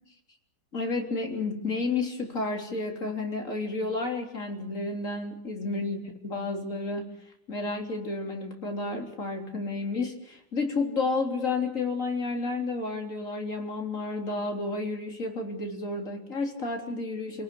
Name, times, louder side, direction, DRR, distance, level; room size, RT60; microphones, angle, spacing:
voice 1, 0.7-7.1 7.5-17.4, left 3 dB, 40° left, 2 dB, 4.0 m, -31 dB
29.5 x 18.5 x 8.5 m, 0.73 s
omnidirectional pair, 2.0 m